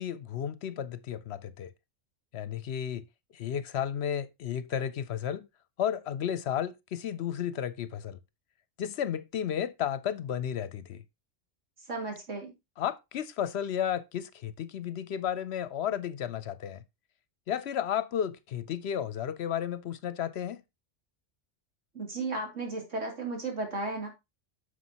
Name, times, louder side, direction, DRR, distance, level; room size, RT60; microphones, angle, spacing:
voice 1, 0.0-1.7 2.3-3.0 3.3-5.5 5.8-8.2 8.8-11.0 12.8-16.8 17.5-20.6, left 9 dB, 65° left, 0.8 m, -33 dB
voice 2, 11.9-12.5 21.9-24.1, right 3 dB, 80° right, 3.3 m, -34 dB
9.5 x 6.6 x 2.9 m
omnidirectional pair, 1.3 m